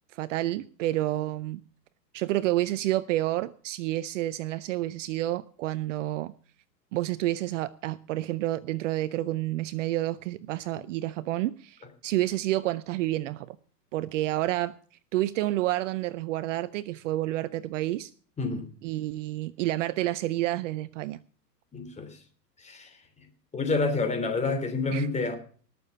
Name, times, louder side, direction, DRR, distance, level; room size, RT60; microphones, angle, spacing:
voice 1, 0.1-1.6 2.1-6.3 6.9-13.6 13.9-14.8 15.1-18.1 18.8-21.2 24.9-25.1, right 15 dB, 50° right, 0.6 m, -29 dB
voice 2, 21.7-22.2 22.6-23.0 23.5-25.4, left 3 dB, 15° left, 3.1 m, -28 dB
19.5 x 6.9 x 5.6 m
hypercardioid pair, 125°, 49 cm